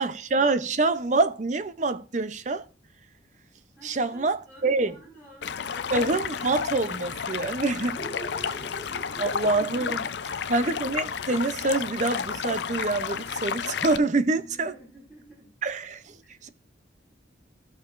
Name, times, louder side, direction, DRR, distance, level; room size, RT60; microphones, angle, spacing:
voice 1, 0.0-2.7 3.8-4.9 5.9-8.0 9.2-10.1 10.5-14.7 15.6-16.2 16.4-16.5, right 3 dB, 40° right, 0.6 m, -26 dB
voice 2, 3.8-5.9 7.8-9.9 10.2-10.7 14.2-15.5 16.2-16.4, right 1 dB, 15° right, 4.1 m, -46 dB
Stream, 5.4-14.0, left 7 dB, 65° left, 0.5 m, -32 dB
16.5 x 6.6 x 2.5 m
head